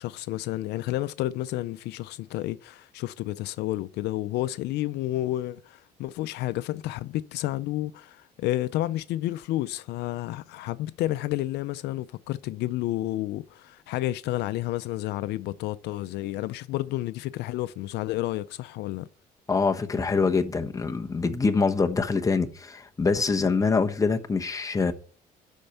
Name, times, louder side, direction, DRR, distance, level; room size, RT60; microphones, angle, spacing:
voice 1, 0.0-19.1, left 15 dB, 80° left, 0.5 m, -30 dB
voice 2, 19.5-24.9, left 4 dB, 20° left, 1.1 m, -25 dB
11.5 x 4.5 x 6.8 m
cardioid pair, 110°, 17 cm